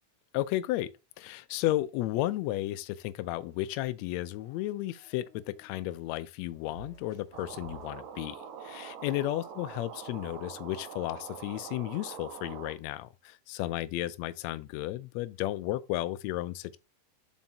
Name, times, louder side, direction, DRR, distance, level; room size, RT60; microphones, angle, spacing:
voice 1, 0.3-0.9 1.2-16.8, left 15 dB, 80° left, 1.6 m, -33 dB
sound 1, 3.2-3.9 4.2-5.8 6.7-10.7, equal, 40° left, 3.2 m, -56 dB
sound 2, 7.3-12.7, right 7 dB, 75° right, 2.1 m, -44 dB
7.2 x 5.3 x 2.8 m
omnidirectional pair, 3.5 m